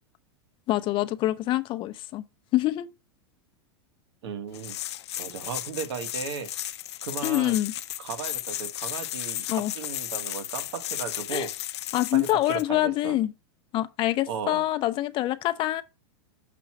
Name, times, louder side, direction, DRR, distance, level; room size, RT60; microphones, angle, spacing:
voice 1, 0.7-2.2 2.5-2.9 7.2-7.7 9.5-9.7 11.3-11.5 11.9-13.3 13.7-15.8, left 15 dB, 35° left, 0.6 m, -25 dB
voice 2, 4.2-4.8 5.2-6.7 7.0-7.6 8.0-11.5 12.1-13.2 14.3-14.6, right 6 dB, 75° right, 1.6 m, -36 dB
sound 1, 4.5-12.6, left 13 dB, 80° left, 0.6 m, -35 dB
6.8 x 3.1 x 5.8 m
supercardioid pair, 125°, 14 cm